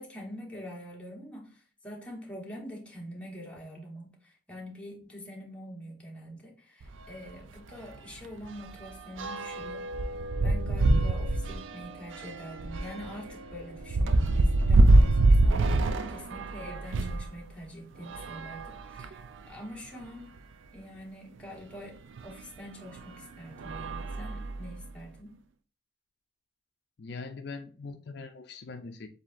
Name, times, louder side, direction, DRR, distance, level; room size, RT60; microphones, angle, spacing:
voice 1, 0.0-9.9 10.4-20.3 20.7-25.4, equal, 5° left, -2 dB, 1.1 m, -45 dB
sound 1, 6.8-7.0 7.4-7.5 7.8-17.3 18.0-19.3 20.0-20.1 20.4-20.5 22.2-22.3 22.9-23.2 23.6-24.8, right 2 dB, 80° right, 0.4 m, -25 dB
voice 2, 27.0-29.1, left 4 dB, 55° left, 6 dB, 0.4 m, -41 dB
7.3 x 2.7 x 2.5 m, 0.40 s
head